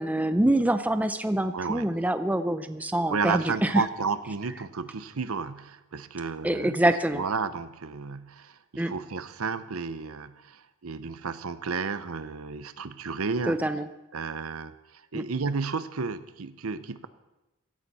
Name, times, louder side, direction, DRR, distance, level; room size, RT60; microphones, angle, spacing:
voice 1, 0.0-3.8 6.4-7.2 8.8-8.9 13.5-13.9 15.1-15.2, right 1 dB, 5° right, 10 dB, 0.5 m, -25 dB
voice 2, 1.5-1.9 3.1-6.8 7.1-13.6 14.1-17.1, right 5 dB, 75° right, 13 dB, 0.7 m, -32 dB
16.0 x 13.5 x 4.2 m, 0.99 s
head